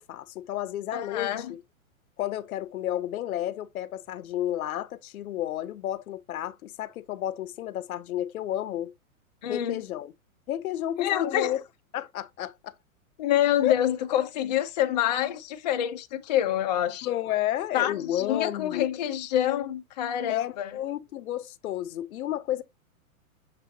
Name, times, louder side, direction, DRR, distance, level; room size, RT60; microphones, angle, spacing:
voice 1, 0.0-1.6 2.2-8.9 9.5-10.1 10.5-11.6 11.9-12.7 13.6-13.7 17.0-18.9 20.3-22.6, left 12 dB, 85° left, 0.7 m, -31 dB
voice 2, 0.9-1.5 9.4-9.8 11.0-11.6 13.2-17.1 17.7-20.7, left 11 dB, 35° left, 0.4 m, -27 dB
6.7 x 2.9 x 2.7 m
hypercardioid pair, 165°, 42 cm